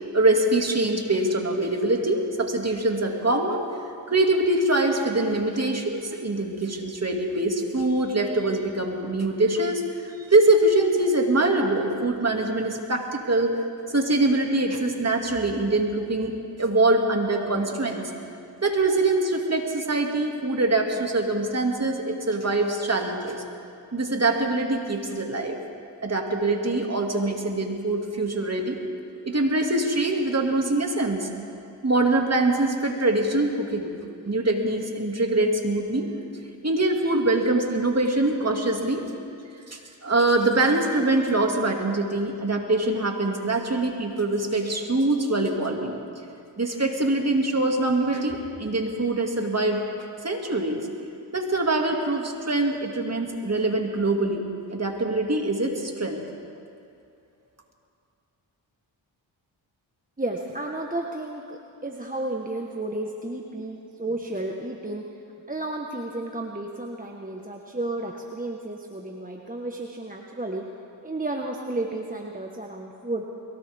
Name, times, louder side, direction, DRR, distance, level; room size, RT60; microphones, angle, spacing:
voice 1, 0.1-3.6 4.1-13.6 13.9-18.1 18.6-23.4 23.9-25.6 26.0-28.8 29.2-31.3 31.8-33.9 34.3-36.1 36.6-39.0 39.7-46.0 46.6-49.8 50.2-50.9 51.3-56.2, right 2 dB, 35° right, 2 dB, 2.4 m, -24 dB
voice 2, 60.2-65.0 65.5-70.6 71.0-73.2, right 2 dB, 15° right, 0 dB, 1.4 m, -32 dB
22.0 x 17.5 x 3.6 m, 2.5 s
cardioid pair, 45°, 47 cm